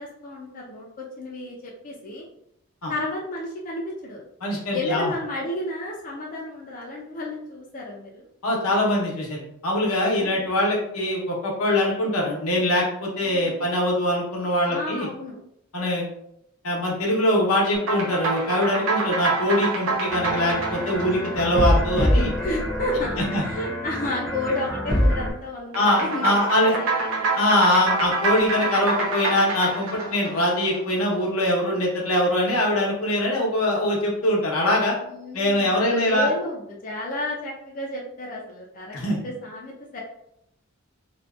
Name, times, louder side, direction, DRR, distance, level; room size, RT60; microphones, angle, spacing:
voice 1, 0.0-2.2 2.9-4.2 4.7-8.3 10.1-10.5 13.2-13.7 14.7-15.4 22.4-27.3 35.1-39.0 39.2-40.0, left 1 dB, 40° left, -3 dB, 0.4 m, -32 dB
voice 2, 4.4-5.1 8.4-15.1 15.7-16.1 16.6-22.3 23.3-23.4 25.7-26.8 27.4-34.9 35.3-36.3 38.9-39.2, left 1 dB, 85° left, -2 dB, 0.7 m, -23 dB
sound 1, 17.7-22.4 25.7-31.2, right 4 dB, 80° right, 0.6 m, -27 dB
sound 2, 20.1-25.3, equal, ahead, 0.6 m, -25 dB
2.5 x 2.2 x 2.3 m, 0.77 s
head